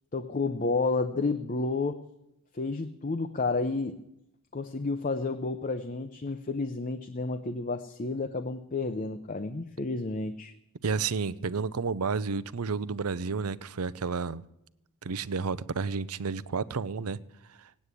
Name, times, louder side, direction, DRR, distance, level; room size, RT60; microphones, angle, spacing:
voice 1, 0.1-2.1 2.5-4.0 4.5-10.5, left 3 dB, 35° left, 8 dB, 0.7 m, -31 dB
voice 2, 10.8-14.4 15.0-17.2 17.6-17.7, right 5 dB, 80° right, 17 dB, 0.6 m, -31 dB
17.5 x 9.4 x 8.3 m, 0.84 s
head